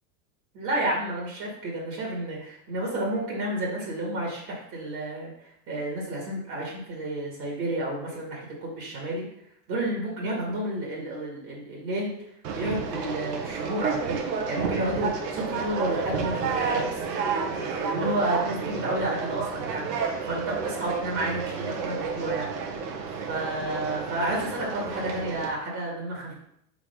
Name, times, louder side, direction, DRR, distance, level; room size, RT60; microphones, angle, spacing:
voice 1, 0.5-5.3 5.7-9.3 9.7-12.1 12.5-14.2 14.5-16.9 17.5-22.5 23.2-26.3, right 1 dB, 35° right, -3 dB, 2.1 m, -31 dB
Conversation, 12.4-25.5, right 5 dB, 70° right, 1.4 m, -31 dB
4.7 x 4.1 x 5.3 m, 0.72 s
supercardioid pair, 160°, 49 cm